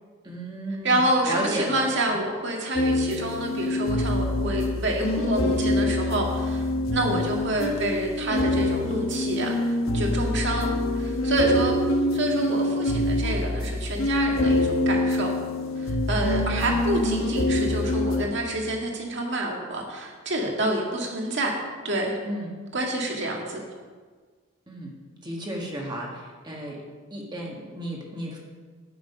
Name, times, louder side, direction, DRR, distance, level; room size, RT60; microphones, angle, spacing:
voice 1, 0.2-2.2 6.9-7.3 16.6-17.0 22.2-22.5 24.7-24.9 25.2-26.8 27.1-28.4, right 1 dB, 20° right, -2 dB, 1.5 m, -34 dB
voice 2, 0.8-6.7 6.9-10.7 10.9-11.7 12.1-15.3 15.8-21.5 21.8-22.2 22.7-23.6, right 1 dB, 60° right, 0 dB, 2.0 m, -27 dB
sound 1, 2.7-18.2, left 1 dB, 80° left, 1.2 m, -25 dB
9.0 x 8.5 x 5.5 m, 1.5 s
head